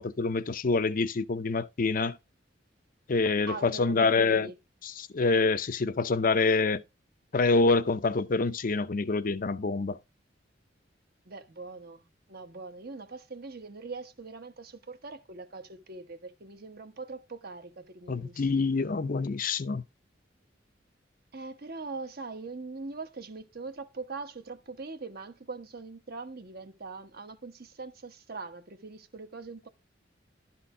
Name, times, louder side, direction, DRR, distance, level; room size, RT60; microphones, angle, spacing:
voice 1, 0.0-2.2 3.1-4.5 4.8-6.8 7.3-10.0 18.1-19.8, left 3 dB, 50° left, 0.6 m, -26 dB
voice 2, 3.5-4.5 11.2-18.7 21.3-29.7, right 3 dB, 55° right, 1.1 m, -42 dB
12.0 x 4.3 x 4.9 m
head